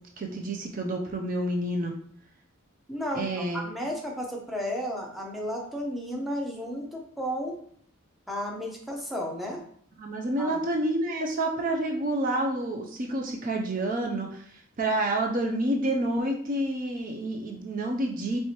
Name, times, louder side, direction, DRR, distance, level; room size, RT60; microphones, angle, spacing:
voice 1, 0.2-1.9 3.1-3.6 10.0-18.4, right 1 dB, 40° right, 1 dB, 0.5 m, -29 dB
voice 2, 2.9-3.3 3.5-7.6 8.3-9.6 10.4-10.6, equal, ahead, -1 dB, 0.7 m, -33 dB
4.6 x 3.3 x 2.9 m, 0.62 s
head